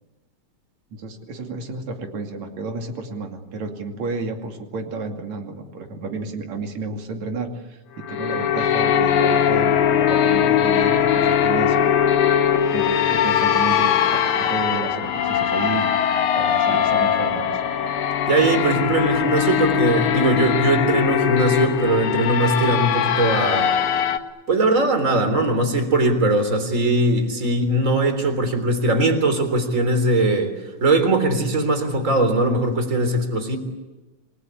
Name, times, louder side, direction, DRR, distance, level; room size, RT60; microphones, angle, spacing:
voice 1, 0.9-11.8 12.7-15.9 16.4-17.6, right 3 dB, 70° right, 3 dB, 3.8 m, -31 dB
sound 1, 8.0-24.2, left 9 dB, 85° left, 2.8 m, -20 dB
voice 2, 18.3-23.7 24.5-30.6 30.8-33.6, right 2 dB, 25° right, 7 dB, 3.8 m, -20 dB
29.0 x 21.0 x 8.6 m, 1.1 s
omnidirectional pair, 3.3 m